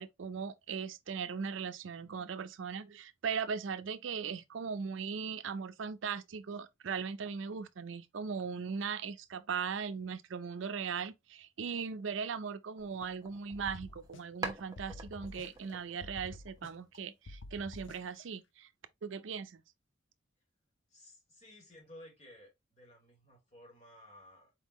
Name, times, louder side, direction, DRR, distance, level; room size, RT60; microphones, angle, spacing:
voice 1, 0.0-18.7 19.0-19.6, right 6 dB, 75° right, 0.5 m, -39 dB
sound 1, 12.8-14.1 14.4-17.0, right 3 dB, 20° right, 0.9 m, -46 dB
sound 2, 13.5-14.5 14.8-15.7 16.0-17.0 17.3-18.2, left 2 dB, 70° left, 0.6 m, -49 dB
voice 2, 20.9-24.5, left 1 dB, 35° left, 2.2 m, -56 dB
4.5 x 3.6 x 2.9 m
head